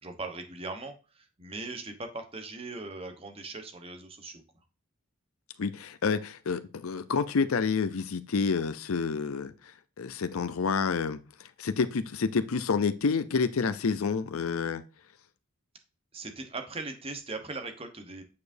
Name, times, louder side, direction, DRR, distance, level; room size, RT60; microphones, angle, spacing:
voice 1, 0.0-4.4 16.1-18.2, right 3 dB, 25° right, 6 dB, 1.0 m, -39 dB
voice 2, 5.6-9.5 10.0-11.2 11.6-14.8, left 5 dB, 85° left, 12 dB, 0.6 m, -28 dB
8.5 x 4.8 x 2.6 m, 0.33 s
head